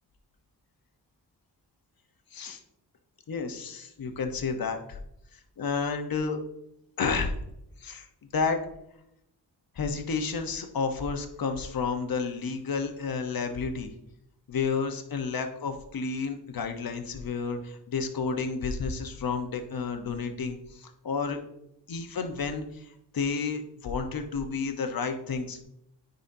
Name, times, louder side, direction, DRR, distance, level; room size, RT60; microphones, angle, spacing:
voice 1, 3.3-5.0 5.6-6.4 7.0-7.3 7.8-8.1 8.3-8.6 9.7-13.9 14.5-21.4 21.9-25.6, left 5 dB, 55° left, 6 dB, 1.0 m, -31 dB
9.7 x 4.1 x 2.7 m, 0.79 s
cardioid pair, 75°, 42 cm